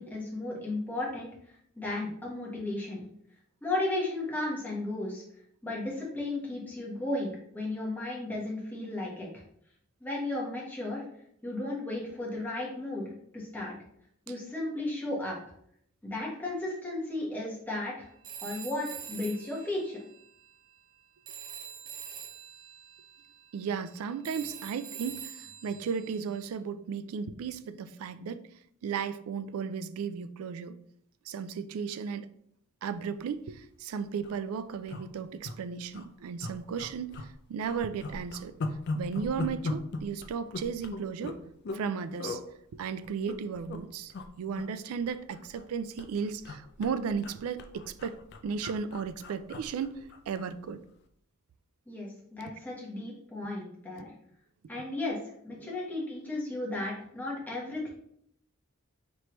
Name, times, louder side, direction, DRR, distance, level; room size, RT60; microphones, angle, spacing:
voice 1, 0.0-3.0 3.6-5.2 5.6-9.4 10.0-11.0 11.4-13.7 14.3-15.4 16.0-18.1 18.4-20.0 51.9-54.1 54.7-55.2 55.4-57.9, left 2 dB, 10° left, -4 dB, 1.1 m, -34 dB
Telephone, 18.2-21.0 21.3-26.5, right 8 dB, 40° right, 0.6 m, -45 dB
voice 2, 23.5-28.4 28.8-30.8 31.3-32.3 32.8-38.5 38.9-42.4 42.7-48.2 48.4-50.8 55.6-55.7, right 6 dB, 85° right, 13 dB, 0.3 m, -35 dB
sound 1, 33.4-33.6 33.9-34.0 34.2-34.4 34.9-35.6 35.9-36.0 36.4-37.3 37.6-41.9 42.2-42.4 43.0-43.8 44.1-44.3 44.6-45.7 46.0-50.5 50.9-51.0, left 2 dB, 50° left, 0.4 m, -38 dB
4.5 x 3.2 x 3.0 m, 0.70 s
head